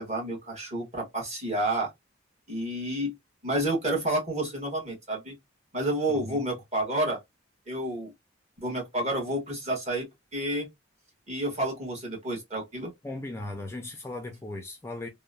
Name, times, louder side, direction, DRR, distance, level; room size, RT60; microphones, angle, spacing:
voice 1, 0.0-1.9 2.5-3.1 3.4-5.3 5.7-7.2 7.7-8.1 8.6-10.1 10.3-10.7 11.3-12.9, right 1 dB, 35° right, 1.2 m, -30 dB
voice 2, 6.1-6.4 13.0-15.1, left 2 dB, 15° left, 0.3 m, -37 dB
2.9 x 2.0 x 2.4 m
head